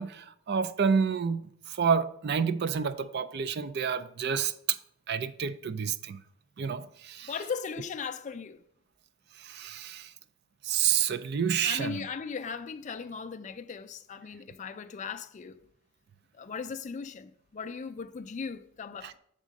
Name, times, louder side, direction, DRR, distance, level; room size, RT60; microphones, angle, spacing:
voice 1, 0.0-4.5 5.1-6.2 6.6-7.3 9.4-10.1 10.6-12.1 19.0-19.1, right 6 dB, 50° right, 0.4 m, -29 dB
voice 2, 7.3-8.6 11.6-15.6 16.3-19.2, left 5 dB, 35° left, 0.3 m, -38 dB
8.3 x 3.7 x 5.1 m
head